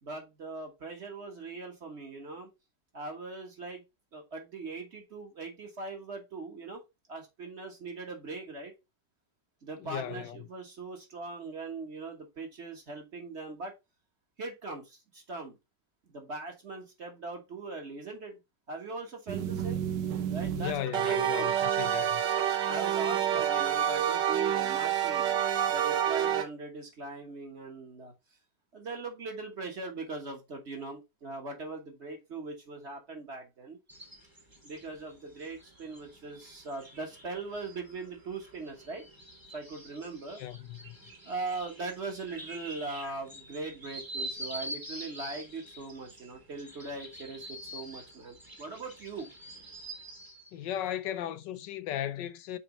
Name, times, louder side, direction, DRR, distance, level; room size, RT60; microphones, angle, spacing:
voice 1, 0.0-2.5 2.9-3.8 4.1-6.8 7.1-8.7 9.6-13.7 14.4-15.6 16.1-18.4 18.7-19.8 20.3-21.5 22.6-25.4 25.7-28.1 28.7-33.8 34.6-39.0 39.5-40.4 41.2-49.3, right 3 dB, 40° right, 1.6 m, -40 dB
voice 2, 9.8-10.5 20.6-22.2 40.4-41.0 50.5-52.6, left 11 dB, 90° left, 1.3 m, -36 dB
sound 1, 19.3-26.4, right 10 dB, 80° right, 1.5 m, -28 dB
sound 2, 33.9-50.5, right 1 dB, 15° right, 1.2 m, -46 dB
6.0 x 4.3 x 3.9 m
omnidirectional pair, 1.9 m